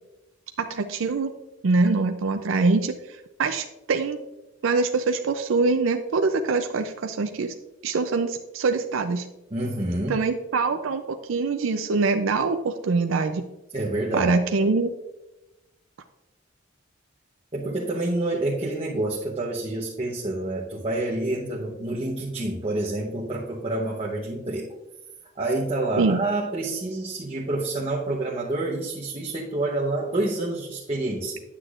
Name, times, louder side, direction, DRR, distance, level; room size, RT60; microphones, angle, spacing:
voice 1, 0.6-1.3 1.6-2.9 3.4-4.2 4.6-7.5 7.8-9.3 10.1-13.5 14.1-14.9 26.0-26.2, right 3 dB, 90° right, 6 dB, 0.5 m, -24 dB
voice 2, 9.5-10.2 13.7-14.3 17.5-24.7 25.3-31.4, right 2 dB, 30° right, -4 dB, 0.9 m, -28 dB
9.8 x 8.1 x 2.4 m, 1.0 s
head